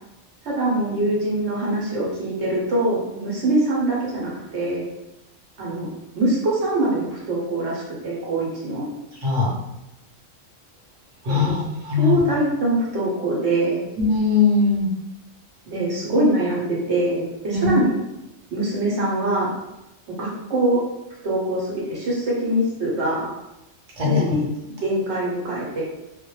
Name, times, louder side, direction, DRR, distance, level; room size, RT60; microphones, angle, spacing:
voice 1, 0.4-4.9 5.6-5.9 6.1-8.9 11.2-11.6 12.0-13.8 15.7-18.0 18.5-19.5 20.2-20.8 21.2-23.3 24.0-24.4 24.8-25.8, right 1 dB, 70° right, -5 dB, 0.9 m, -23 dB
voice 2, 11.2-12.2 14.0-14.8 17.5-17.7 24.0-24.2, left 5 dB, 40° right, -5 dB, 0.7 m, -20 dB
2.1 x 2.1 x 3.0 m, 0.93 s
omnidirectional pair, 1.3 m